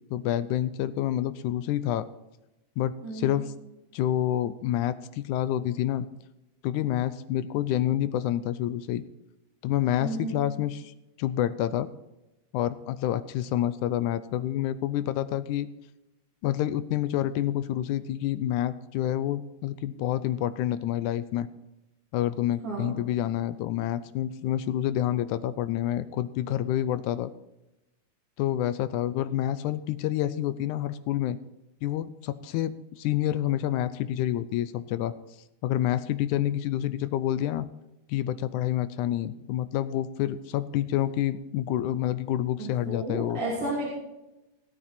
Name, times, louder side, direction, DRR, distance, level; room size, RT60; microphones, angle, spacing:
voice 1, 0.1-2.1 2.8-3.5 3.9-6.1 6.6-9.0 9.6-11.9 12.5-15.7 16.4-21.5 22.1-27.3 28.4-31.4 31.8-35.1 35.6-37.7 38.1-43.4, left 12 dB, 80° left, 14 dB, 1.9 m, -28 dB
voice 2, 3.0-3.4 10.0-10.4 22.6-23.0 42.6-43.9, right 2 dB, 45° right, -5 dB, 3.6 m, -32 dB
17.5 x 8.8 x 4.3 m, 0.96 s
omnidirectional pair, 3.7 m